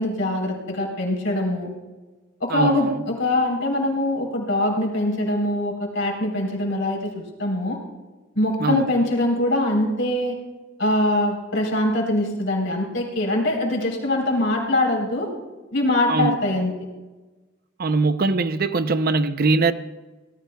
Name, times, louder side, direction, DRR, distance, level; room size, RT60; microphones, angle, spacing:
voice 1, 0.0-1.7 2.4-7.8 8.4-10.4 10.8-15.3 15.7-16.7, left 1 dB, 65° left, 0 dB, 3.7 m, -23 dB
voice 2, 2.5-3.0 8.6-8.9 16.1-16.4 17.8-19.7, right 3 dB, 50° right, 11 dB, 0.6 m, -21 dB
24.5 x 18.0 x 2.3 m, 1.2 s
head